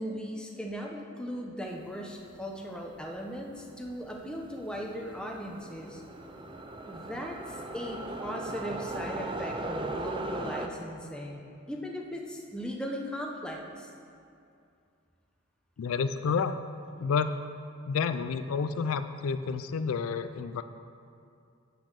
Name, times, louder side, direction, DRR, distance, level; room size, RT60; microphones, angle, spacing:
voice 1, 0.0-6.0 6.9-7.4 7.7-13.9, equal, 5° left, 0 dB, 0.8 m, -38 dB
sound 1, 2.9-3.0 3.3-10.7, right 2 dB, 25° right, 0.5 m, -38 dB
voice 2, 15.8-16.5 17.0-17.3 17.9-20.6, left 5 dB, 80° left, 11 dB, 0.4 m, -29 dB
8.5 x 6.2 x 6.5 m, 2.5 s
head